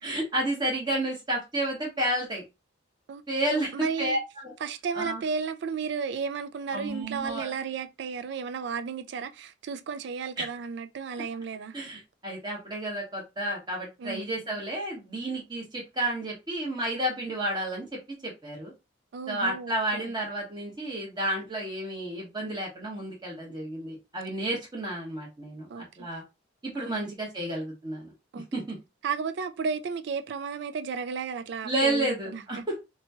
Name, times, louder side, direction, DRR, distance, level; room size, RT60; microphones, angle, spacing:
voice 1, 0.0-2.4 3.3-4.2 4.4-4.5 4.9-5.2 6.7-7.5 10.4-10.5 11.7-18.7 19.3-26.2 26.6-28.1 28.5-28.8 31.6-32.7, right 1 dB, 20° right, 1.1 m, -31 dB
voice 2, 3.1-4.2 4.6-11.7 14.0-14.2 19.1-20.1 25.7-25.8 26.8-27.1 28.3-28.5 29.0-32.6, right 5 dB, 60° right, 0.3 m, -33 dB
2.9 x 2.3 x 2.7 m
head